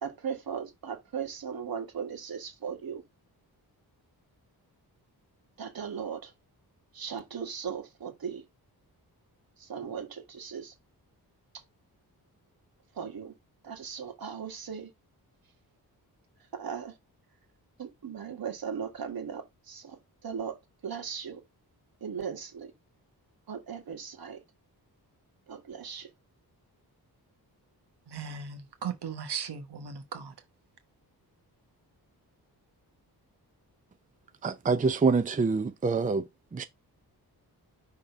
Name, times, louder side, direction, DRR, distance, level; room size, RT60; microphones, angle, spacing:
voice 1, 0.0-3.0 5.6-6.3 6.9-8.4 9.6-10.7 12.9-13.4 13.6-14.9 16.5-17.0 17.8-21.4 22.0-22.7 23.5-24.4 25.5-26.1, right 7 dB, 65° right, 2.0 m, -38 dB
voice 2, 28.1-30.3, right 6 dB, 85° right, 1.2 m, -37 dB
voice 3, 34.4-36.2 36.5-36.6, right 4 dB, 20° right, 0.5 m, -26 dB
5.8 x 3.7 x 5.0 m
wide cardioid pair, 160°, 39 cm